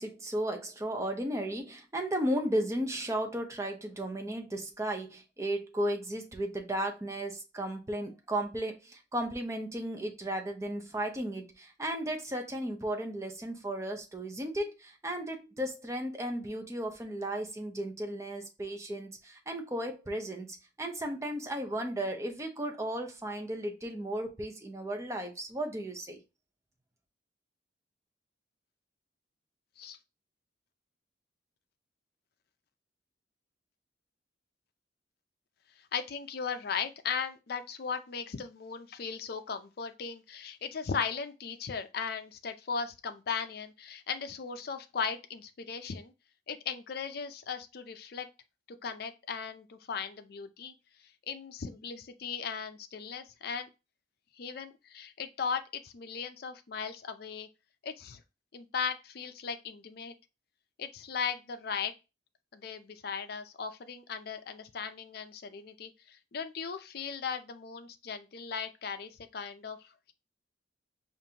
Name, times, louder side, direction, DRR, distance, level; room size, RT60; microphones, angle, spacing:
voice 1, 0.0-20.5 20.8-26.2, right 1 dB, 15° right, 0.6 m, -35 dB
voice 2, 35.8-46.1 46.5-48.3 48.8-50.7 51.3-53.7 54.3-57.5 57.8-58.2 58.5-60.1 60.8-61.9 62.5-70.1, left 6 dB, 55° left, 0.5 m, -37 dB
5.2 x 2.5 x 2.8 m
head